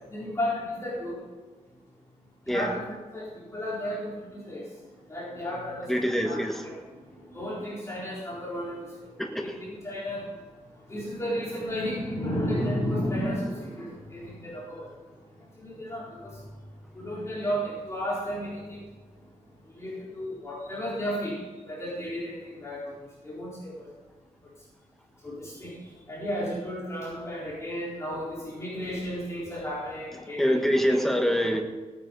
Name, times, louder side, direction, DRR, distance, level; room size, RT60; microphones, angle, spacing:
voice 1, 0.1-1.2 2.4-4.6 5.1-6.7 7.2-9.1 9.4-10.3 10.9-14.9 15.6-16.4 16.9-18.8 19.7-23.0 23.2-23.9 25.2-25.8 26.1-30.6, equal, 20° left, -8 dB, 4.2 m, -33 dB
voice 2, 5.9-6.7 9.2-9.6 30.2-31.6, equal, ahead, 2 dB, 1.4 m, -25 dB
16.5 x 9.5 x 5.3 m, 1.3 s
wide cardioid pair, 170°, 13 cm